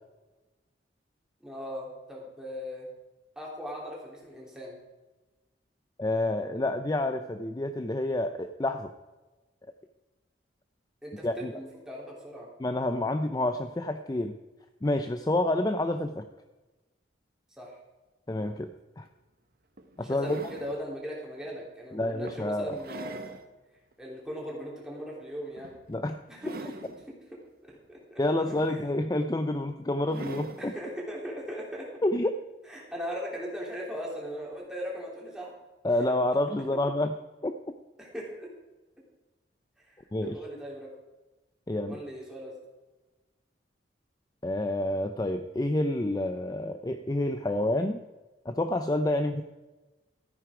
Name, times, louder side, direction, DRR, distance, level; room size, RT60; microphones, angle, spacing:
voice 1, 1.4-2.9 3.3-4.8 11.0-12.5 17.6-17.7 20.0-23.4 24.0-25.8 26.3-26.7 27.6-28.8 30.6-31.9 32.7-35.5 36.1-36.2 38.0-38.5 39.8-40.9 41.9-42.5, equal, 5° right, -4 dB, 3.1 m, -39 dB
voice 2, 6.0-8.9 11.2-11.5 12.6-14.4 14.8-16.2 18.3-18.7 19.0-19.1 20.0-20.4 21.9-22.7 25.9-26.2 28.2-30.7 32.0-32.4 35.8-37.1 37.4-37.6 40.1-40.4 41.7-42.0 44.4-48.0 48.5-49.4, left 1 dB, 20° left, 8 dB, 0.4 m, -28 dB
sound 1, 19.0-19.1 19.8-20.8 21.5-21.6 22.3-23.4 23.9-24.0 25.6-25.9 26.3-27.1 28.2-29.1 30.1-30.7 32.0-32.1, right 2 dB, 55° right, 0.9 m, -43 dB
13.5 x 9.7 x 4.9 m, 1.2 s
head